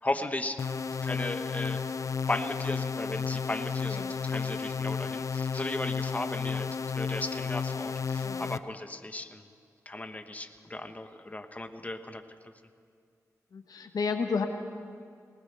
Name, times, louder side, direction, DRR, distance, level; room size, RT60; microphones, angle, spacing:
voice 1, 0.0-0.6 1.0-1.8 2.3-9.5 9.8-12.2, left 2 dB, 25° left, 8 dB, 1.0 m, -36 dB
sound 1, 0.6-8.6, left 5 dB, 55° left, 0.4 m, -32 dB
voice 2, 13.5-14.5, left 5 dB, 75° left, 6 dB, 1.0 m, -31 dB
20.0 x 20.0 x 3.3 m, 2.2 s
cardioid pair, 50°, 6 cm